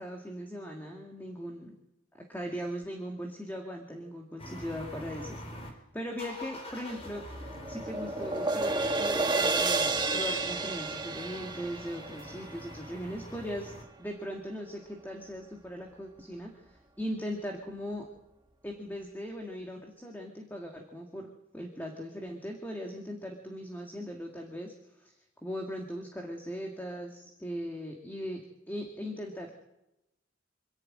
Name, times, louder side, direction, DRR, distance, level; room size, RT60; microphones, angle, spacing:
voice 1, 0.0-1.7 2.3-5.4 5.7-7.2 7.7-13.7 14.0-18.1 18.6-24.7 25.0-25.2 25.4-29.5, equal, 10° left, 1 dB, 2.0 m, -39 dB
sound 1, 4.4-5.7 6.1-13.8, left 1 dB, 30° left, 3.8 m, -46 dB
sound 2, 6.9-13.2, right 3 dB, 20° right, 1.4 m, -31 dB
26.5 x 11.5 x 8.9 m, 0.90 s
head